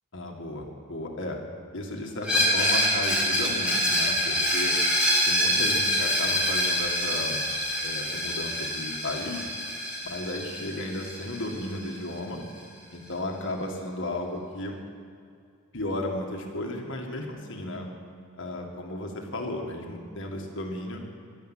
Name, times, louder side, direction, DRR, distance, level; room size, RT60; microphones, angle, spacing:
voice 1, 0.1-1.4 1.7-4.8 5.3-7.4 7.8-9.4 10.0-12.4 12.9-14.8 15.7-17.9 18.4-21.0, left 1 dB, 60° left, 1 dB, 2.0 m, -34 dB
Screech, 2.2-11.9, equal, 5° right, 4.0 m, -26 dB
11.5 x 10.5 x 9.2 m, 2.3 s
head